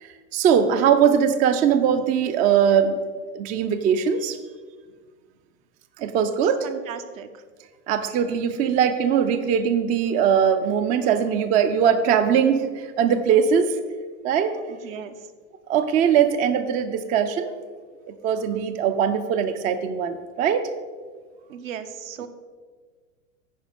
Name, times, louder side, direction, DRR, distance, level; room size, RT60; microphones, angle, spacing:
voice 1, 0.0-3.0 3.3-4.4 6.0-6.7 7.9-13.8 14.2-14.6 15.7-17.5 18.1-20.7, right 8 dB, 20° right, 9 dB, 0.3 m, -21 dB
voice 2, 6.6-7.4 14.7-15.3 21.5-22.3, right 8 dB, 75° right, 8 dB, 1.0 m, -37 dB
10.0 x 4.7 x 5.1 m, 1.5 s
hypercardioid pair, 115°, 41 cm